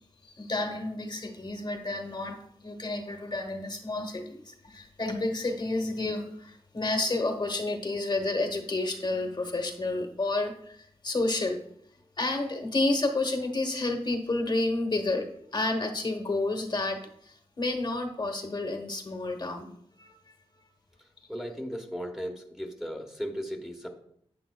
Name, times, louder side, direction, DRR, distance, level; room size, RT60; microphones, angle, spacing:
voice 1, 0.2-11.7 12.2-20.4, left 2 dB, 45° left, 4 dB, 1.1 m, -30 dB
voice 2, 21.3-23.9, equal, 5° right, 2 dB, 1.1 m, -36 dB
10.5 x 8.8 x 2.3 m, 0.69 s
wide cardioid pair, 110°, 11 cm